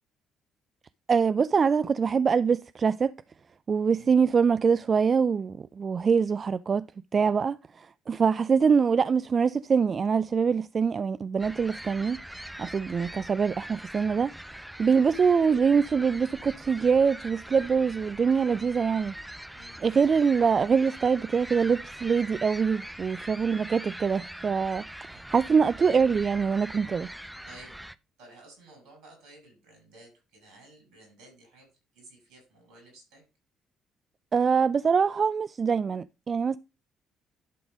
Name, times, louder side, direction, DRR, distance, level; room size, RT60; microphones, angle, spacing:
voice 1, 1.1-3.1 3.7-6.9 7.1-12.2 12.6-14.3 14.8-19.1 19.8-24.8 25.1-27.1 34.3-36.6, right 6 dB, 45° right, 0.3 m, -24 dB
sound 1, 11.4-28.0, right 1 dB, 5° right, 0.6 m, -43 dB
voice 2, 14.9-15.4 19.5-19.8 25.1-25.2 27.4-27.8 28.2-33.2, right 2 dB, 75° right, 6.0 m, -53 dB
11.5 x 3.9 x 5.1 m
hypercardioid pair, 50°, 0 cm